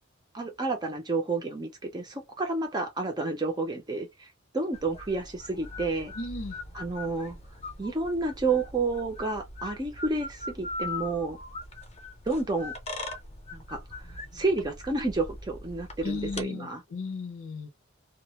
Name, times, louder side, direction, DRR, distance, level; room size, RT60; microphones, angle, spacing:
voice 1, 0.3-4.3 4.5-6.1 6.7-7.4 7.8-11.4 12.3-12.7 13.5-13.8 14.3-16.8, right 3 dB, 20° right, 0.5 m, -30 dB
sound 1, 4.7-16.4, left 2 dB, 30° left, 0.6 m, -41 dB
voice 2, 6.2-6.6 16.0-17.7, left 3 dB, 80° left, 0.7 m, -35 dB
2.2 x 2.0 x 2.9 m
head